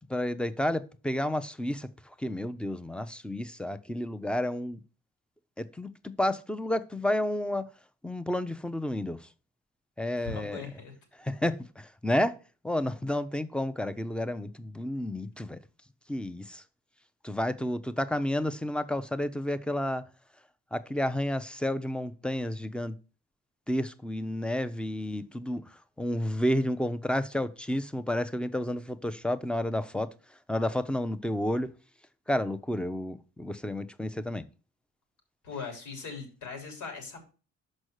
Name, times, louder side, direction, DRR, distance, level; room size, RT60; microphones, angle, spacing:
voice 1, 0.1-1.9 2.2-4.8 5.6-7.7 8.0-9.2 10.0-10.6 11.2-12.4 12.6-15.6 16.1-16.6 17.2-20.0 20.7-23.0 23.7-25.7 26.0-30.1 30.5-31.7 32.3-34.4, left 1 dB, 5° left, 0.6 m, -31 dB
voice 2, 10.2-10.9 35.4-37.3, left 4 dB, 80° left, 3.4 m, -40 dB
6.2 x 5.4 x 6.4 m
cardioid pair, 90°, 30 cm